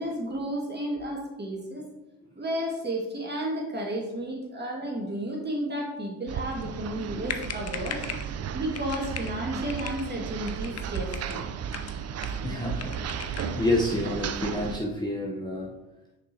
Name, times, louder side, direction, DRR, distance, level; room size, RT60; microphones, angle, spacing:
voice 1, 0.0-1.9 2.4-8.0 8.5-11.4, right 1 dB, 25° right, -1 dB, 2.0 m, -32 dB
sound 1, 6.3-14.8, right 7 dB, 40° right, 0.5 m, -34 dB
sound 2, 7.0-7.1 7.3-8.3 8.7-9.3 9.7-10.0 10.4-11.4 11.7-12.5 12.8-13.6, left 7 dB, 40° left, 0.7 m, -38 dB
voice 2, 12.4-15.7, left 1 dB, 10° left, -2 dB, 0.9 m, -29 dB
6.3 x 5.4 x 2.9 m, 1.0 s
supercardioid pair, 60°, 39 cm